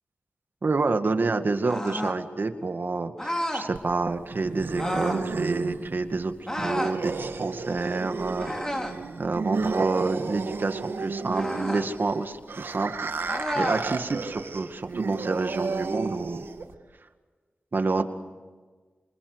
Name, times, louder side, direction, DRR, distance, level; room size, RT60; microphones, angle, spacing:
voice 1, 0.6-6.3 6.6-8.5 9.2-12.9 13.2-16.4 17.7-18.0, right 3 dB, 60° right, 7 dB, 2.1 m, -28 dB
sound 1, 1.6-2.2 3.2-3.7 4.8-5.3 6.5-7.0 8.4-9.0 11.3-11.9 13.3-13.9, equal, 15° left, 3.8 m, -30 dB
sound 2, 3.7-16.7, right 4 dB, 80° right, 1.8 m, -33 dB
27.0 x 26.5 x 8.2 m, 1.4 s
cardioid pair, 50°, 4 cm